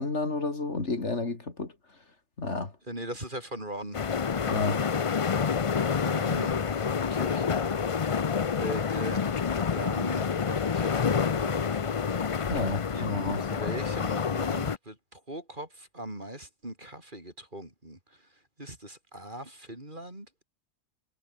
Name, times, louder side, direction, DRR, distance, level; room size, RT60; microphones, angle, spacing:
voice 1, 0.0-1.7 2.4-2.7 4.5-4.8 12.5-13.5, left 3 dB, 60° left, 3.3 m, -31 dB
voice 2, 2.9-4.0 6.0-6.6 7.1-7.6 8.6-9.3 9.7-12.5 12.9-18.0 18.6-20.4, right 1 dB, 40° right, 6.6 m, -40 dB
sound 1, 3.9-14.8, left 6 dB, 40° left, 0.4 m, -28 dB
omnidirectional pair, 1.3 m